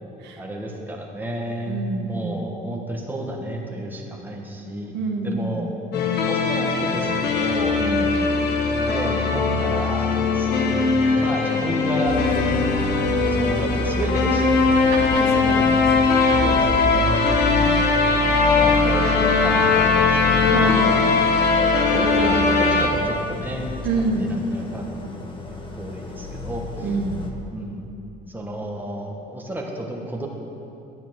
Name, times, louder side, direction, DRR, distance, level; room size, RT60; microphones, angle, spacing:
voice 1, 0.4-4.9 5.2-5.7 6.3-7.8 8.7-12.2 13.1-14.7 16.4-17.3 17.5-18.0 18.6-21.3 21.9-24.9 25.8-26.9 27.5-27.9 28.3-30.3, right 1 dB, 10° right, 0 dB, 1.6 m, -31 dB
voice 2, 1.7-2.4 4.9-5.7 7.8-8.1 14.9-15.9 17.6-17.8 20.5-20.9 21.9-22.8 23.8-24.3 26.8-27.2, right 3 dB, 85° right, 2 dB, 1.3 m, -28 dB
sound 1, 5.9-22.9, left 4 dB, 75° left, 1.3 m, -20 dB
Idling, 12.0-27.3, left 1 dB, 30° left, 1.4 m, -30 dB
11.5 x 8.4 x 6.4 m, 2.8 s
cardioid pair, 110°, 17 cm